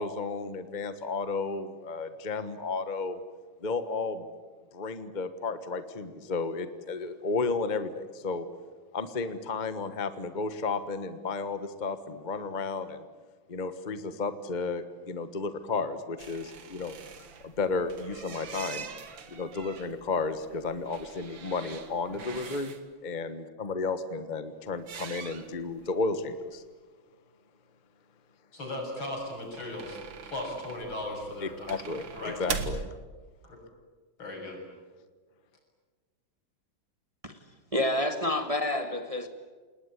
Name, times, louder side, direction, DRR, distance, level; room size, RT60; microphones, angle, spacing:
voice 1, 0.0-3.2 3.6-4.2 4.7-8.5 8.9-13.1 13.5-17.0 17.4-18.9 19.3-22.7 23.0-26.6 31.4-32.9, left 4 dB, 25° left, 11 dB, 1.2 m, -33 dB
sound 1, 16.2-22.8 24.8-25.9 26.2-26.3 26.5-26.6 29.1-32.8, right 5 dB, 75° right, 2.4 m, -42 dB
voice 2, 28.5-31.7 32.1-32.4 33.4-33.6 34.2-34.6, left 1 dB, 80° left, 1 dB, 7.6 m, -37 dB
voice 3, 37.7-39.3, left 1 dB, 20° right, 6 dB, 1.5 m, -28 dB
28.5 x 20.0 x 9.8 m, 1.4 s
omnidirectional pair, 2.1 m